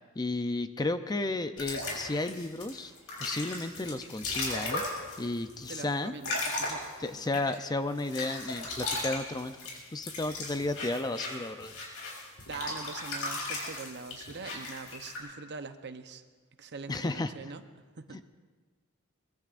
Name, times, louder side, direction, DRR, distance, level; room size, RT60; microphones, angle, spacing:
voice 1, 0.2-2.9 3.2-4.8 5.2-6.1 7.0-9.6 9.9-11.7 16.9-17.3 18.1-18.2, left 2 dB, 20° left, 10 dB, 0.5 m, -33 dB
sound 1, 1.6-7.6 8.0-15.2, left 2 dB, 75° left, 5.4 m, -36 dB
voice 2, 5.7-6.8 7.2-7.4 12.5-16.2 16.6-17.6 18.0-18.2, right 4 dB, 55° right, 8 dB, 0.9 m, -43 dB
23.5 x 21.5 x 2.5 m, 1.4 s
head